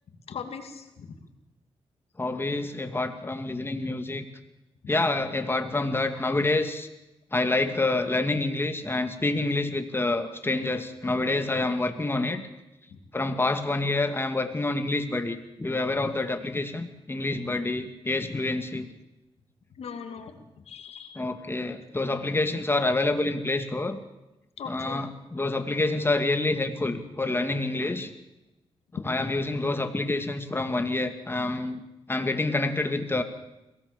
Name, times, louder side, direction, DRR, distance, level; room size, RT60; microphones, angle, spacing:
voice 1, 0.3-1.1 12.9-13.0 19.8-20.4 20.7-21.2 24.6-25.0, left 6 dB, 75° left, 6 dB, 2.7 m, -39 dB
voice 2, 2.2-4.2 4.9-6.9 7.3-12.4 13.1-18.9 21.2-24.0 24.7-28.1 28.9-33.2, left 2 dB, 20° left, 7 dB, 2.3 m, -27 dB
22.5 x 17.5 x 7.1 m, 0.95 s
cardioid pair, 85°, 10 cm